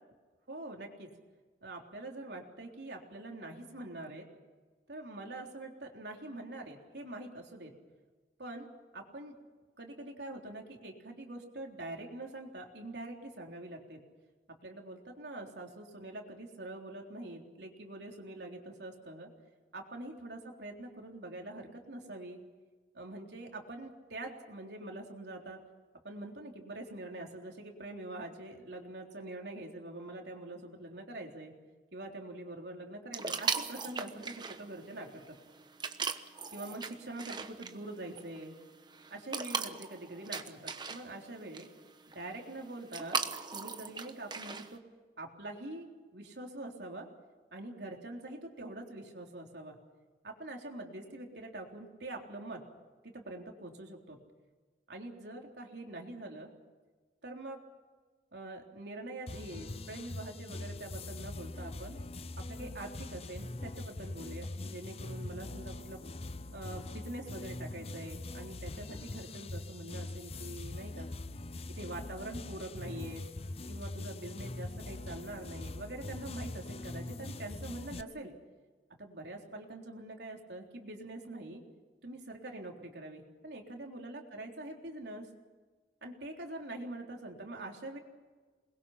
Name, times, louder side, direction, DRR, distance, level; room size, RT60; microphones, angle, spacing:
voice 1, 0.5-1.1 1.6-4.3 4.9-7.7 8.4-8.7 8.9-9.3 9.8-14.0 14.5-19.3 19.7-22.4 22.9-25.6 26.0-31.6 31.9-35.4 36.5-38.6 39.1-41.7 42.1-43.2 43.5-44.8 45.2-47.1 47.5-49.8 50.2-52.6 53.0-54.2 54.9-56.5 57.2-57.6 58.3-62.0 62.4-66.0 66.5-71.1 71.8-73.3 73.7-78.4 79.0-81.6 82.0-85.3 86.0-88.0, right 2 dB, 75° right, 1 dB, 3.6 m, -44 dB
sound 1, 33.1-44.8, right 5 dB, 25° right, 1.1 m, -40 dB
sound 2, 59.3-78.0, left 2 dB, 35° left, 0.7 m, -42 dB
28.0 x 21.0 x 5.8 m, 1.4 s
head